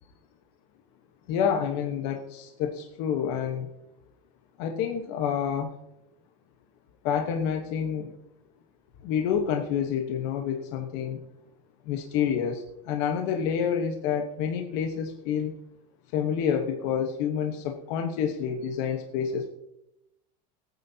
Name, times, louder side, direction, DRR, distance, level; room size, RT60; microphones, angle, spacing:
voice 1, 1.3-3.7 4.6-5.7 7.0-8.1 9.0-11.2 11.9-15.5 16.1-19.5, left 7 dB, 55° left, 4 dB, 1.2 m, -28 dB
22.0 x 9.3 x 2.8 m, 0.88 s
cardioid pair, 170°, 18 cm